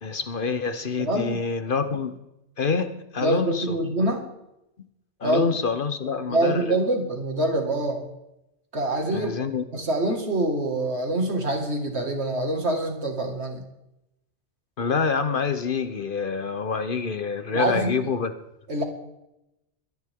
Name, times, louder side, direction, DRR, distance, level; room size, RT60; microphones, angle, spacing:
voice 1, 0.0-2.2 2.6-3.8 5.2-6.8 9.1-9.6 14.8-18.3, left 5 dB, 50° left, 10 dB, 1.0 m, -27 dB
voice 2, 1.0-1.4 3.2-4.2 5.2-5.6 6.3-8.0 8.7-9.4 9.7-13.6 17.5-18.1 18.7-18.8, right 1 dB, 65° right, 3 dB, 2.4 m, -25 dB
21.5 x 10.5 x 3.7 m, 0.86 s
omnidirectional pair, 1.2 m